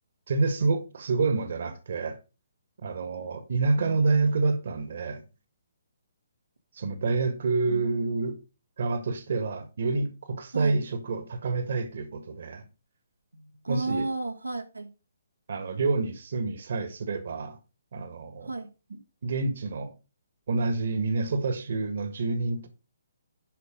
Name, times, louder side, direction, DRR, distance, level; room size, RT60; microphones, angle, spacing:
voice 1, 0.3-2.2 2.8-5.2 6.7-8.4 8.8-12.6 13.7-14.1 15.5-17.6 17.9-18.5 19.2-19.9 20.5-22.7, right 3 dB, 50° right, 1.6 m, -28 dB
voice 2, 13.3-14.9 18.4-18.7, right 3 dB, 80° right, 1.4 m, -33 dB
11.0 x 5.3 x 5.0 m
figure-of-eight pair, 135°, 0 cm